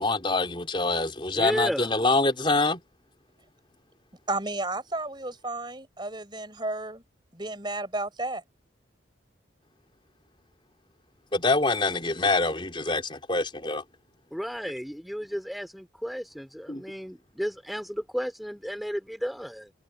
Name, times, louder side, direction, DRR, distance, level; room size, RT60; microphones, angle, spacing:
voice 1, 0.0-2.8 11.3-13.8 16.7-16.8, left 3 dB, 25° left, 3.9 m, -25 dB
voice 2, 1.3-1.9 14.3-19.7, equal, ahead, 3.5 m, -33 dB
voice 3, 4.3-7.0 7.3-8.4, right 2 dB, 25° right, 5.1 m, -32 dB
open air
head